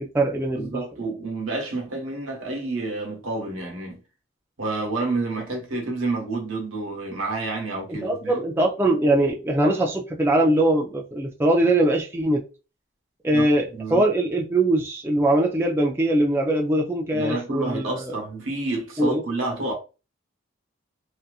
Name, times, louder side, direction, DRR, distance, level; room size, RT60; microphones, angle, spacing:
voice 1, 0.0-0.8 7.9-12.4 13.2-13.7 13.9-18.2 19.0-19.2, right 1 dB, 10° right, 0.4 m, -22 dB
voice 2, 0.5-4.0 4.6-8.4 13.3-14.0 17.1-19.7, right 2 dB, 90° right, 1.0 m, -29 dB
2.7 x 2.4 x 2.3 m
head